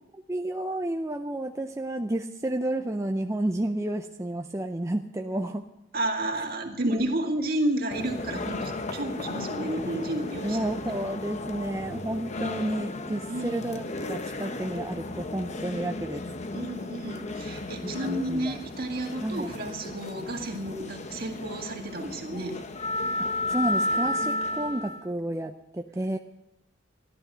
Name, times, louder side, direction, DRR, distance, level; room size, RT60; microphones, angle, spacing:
voice 1, 0.3-5.7 6.9-7.0 10.4-16.2 17.8-18.6 19.2-19.5 23.2-26.2, right 1 dB, 15° right, 4 dB, 0.5 m, -31 dB
voice 2, 5.9-10.6 13.3-13.5 16.5-22.6, right 1 dB, 55° right, 2 dB, 2.0 m, -31 dB
sound 1, 7.9-25.1, left 2 dB, 40° left, 0.8 m, -34 dB
14.0 x 11.5 x 6.2 m, 0.87 s
head